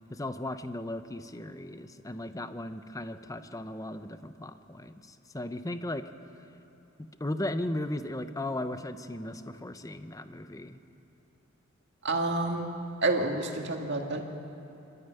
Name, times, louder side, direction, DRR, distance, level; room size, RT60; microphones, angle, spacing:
voice 1, 0.1-6.1 7.0-10.8, left 1 dB, 15° left, 10 dB, 0.7 m, -36 dB
voice 2, 12.0-12.7 13.0-14.2, right 2 dB, 55° right, 3 dB, 2.1 m, -28 dB
25.5 x 13.5 x 9.1 m, 2.9 s
head